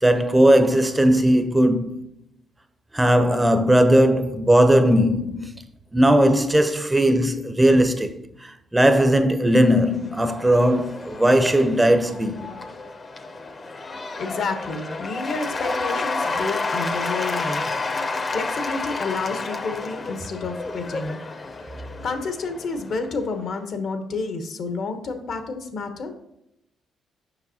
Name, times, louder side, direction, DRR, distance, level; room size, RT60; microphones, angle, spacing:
voice 1, 0.0-2.1 2.9-5.5 5.9-12.5, right 1 dB, 10° right, 0.5 m, -18 dB
Cheering / Applause / Crowd, 9.7-23.2, left 3 dB, 35° left, 0.6 m, -30 dB
voice 2, 14.2-17.6 18.3-21.2 22.0-26.1, left 4 dB, 65° left, 0.9 m, -30 dB
7.0 x 5.3 x 2.7 m
cardioid pair, 90°, 0 cm